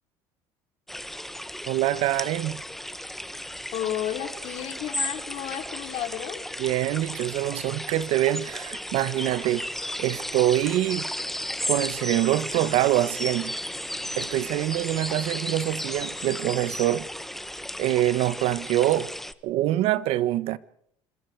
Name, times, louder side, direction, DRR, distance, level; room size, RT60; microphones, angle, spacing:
sound 1, 0.9-19.3, left 1 dB, 5° left, 1.4 m, -34 dB
voice 1, 1.7-2.6 6.6-9.7 10.0-11.1 11.7-13.7 14.2-17.1 17.8-19.1 19.4-20.6, right 14 dB, 75° right, 1.6 m, -25 dB
voice 2, 3.7-6.5, left 11 dB, 65° left, 5.2 m, -32 dB
26.5 x 26.0 x 5.0 m
supercardioid pair, 100°, 10 cm